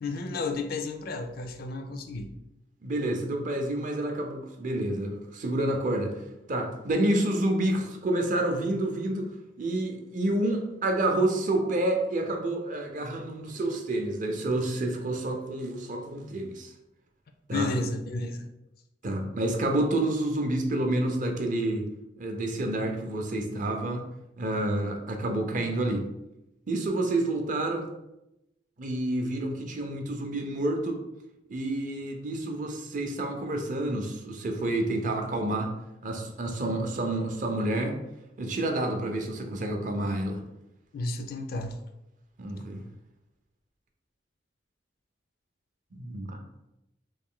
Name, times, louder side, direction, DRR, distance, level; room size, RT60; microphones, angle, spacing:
voice 1, 0.0-2.3 17.5-18.5 40.9-41.8, left 3 dB, 55° left, 6 dB, 0.4 m, -32 dB
voice 2, 2.8-6.2 6.5-9.3 9.6-16.7 17.5-17.7 19.0-21.9 22.2-24.0 24.4-26.1 26.7-27.9 28.8-31.0 31.5-35.7 36.0-38.0 38.4-40.4 42.4-42.8 45.9-46.4, right 1 dB, 45° right, 3 dB, 0.5 m, -29 dB
3.1 x 2.5 x 3.7 m, 0.90 s
head